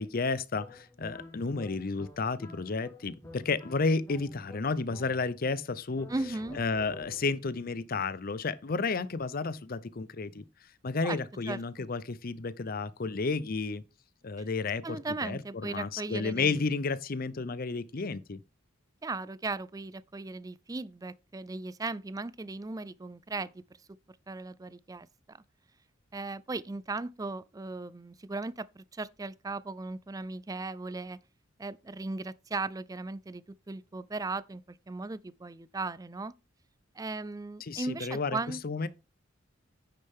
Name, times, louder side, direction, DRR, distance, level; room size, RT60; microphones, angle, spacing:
voice 1, 0.0-6.1 6.5-10.4 10.8-13.8 14.2-18.4 37.6-38.9, left 4 dB, 45° left, 0.6 m, -32 dB
sound 1, 0.6-5.5 5.9-7.5, left 1 dB, 15° left, 1.6 m, -50 dB
voice 2, 6.1-6.6 11.0-11.2 11.5-11.9 14.8-16.6 19.0-23.6 24.3-25.4 26.1-31.2 31.6-36.3 37.0-38.6, right 3 dB, 20° right, 0.4 m, -37 dB
9.9 x 6.6 x 3.6 m
head